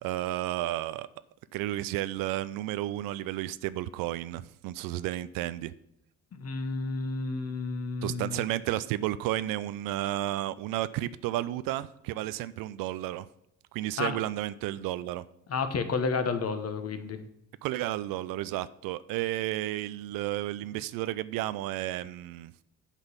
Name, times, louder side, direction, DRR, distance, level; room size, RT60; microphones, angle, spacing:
voice 1, 0.0-1.1 1.5-5.7 8.0-13.3 13.7-15.2 17.6-22.5, right 14 dB, 65° right, 16 dB, 0.5 m, -32 dB
voice 2, 6.3-8.4 14.0-14.2 15.5-17.2, left 4 dB, 40° left, 8 dB, 1.1 m, -31 dB
8.1 x 4.0 x 6.9 m, 0.80 s
hypercardioid pair, 50°, 38 cm